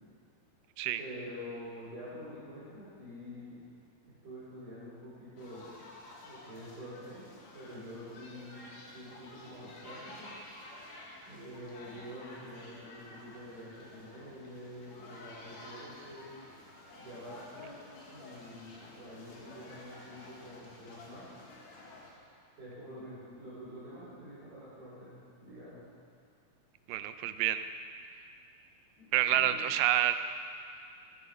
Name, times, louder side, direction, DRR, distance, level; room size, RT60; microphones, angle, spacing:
voice 1, 1.0-3.6 4.2-5.7 6.2-7.2 7.5-8.6 8.9-10.3 11.2-16.3 17.0-17.7 18.1-21.3 22.6-25.8 29.0-29.6, equal, 50° right, -12 dB, 5.5 m, -47 dB
sound 1, 5.4-22.1, left 2 dB, 55° left, 2.6 m, -51 dB
voice 2, 26.9-27.6 29.1-30.1, right 12 dB, 90° right, 10 dB, 2.5 m, -28 dB
14.0 x 12.0 x 5.0 m, 2.3 s
omnidirectional pair, 4.3 m